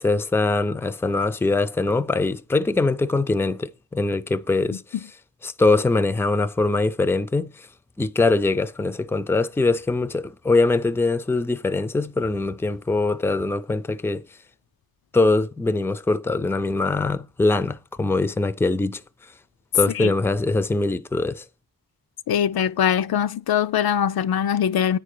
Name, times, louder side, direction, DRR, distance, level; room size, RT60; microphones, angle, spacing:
voice 1, 0.0-5.0 5.4-7.7 8.0-14.2 15.1-19.0 19.7-21.4, left 3 dB, 5° left, 0.4 m, -22 dB
voice 2, 22.3-25.0, left 9 dB, 80° left, 0.5 m, -22 dB
9.3 x 5.0 x 6.6 m
wide cardioid pair, 90°, 37 cm